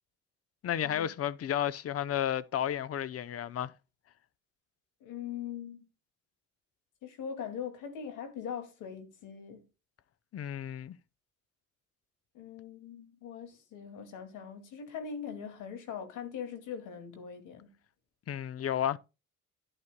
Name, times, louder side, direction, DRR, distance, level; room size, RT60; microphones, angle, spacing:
voice 1, 0.6-3.7 10.3-11.0 18.3-19.0, left 10 dB, 50° left, 0.7 m, -32 dB
voice 2, 5.0-5.9 7.0-9.6 12.3-17.7, left 7 dB, 90° left, 2.3 m, -41 dB
11.5 x 11.0 x 2.2 m
cardioid pair, 90°, 30 cm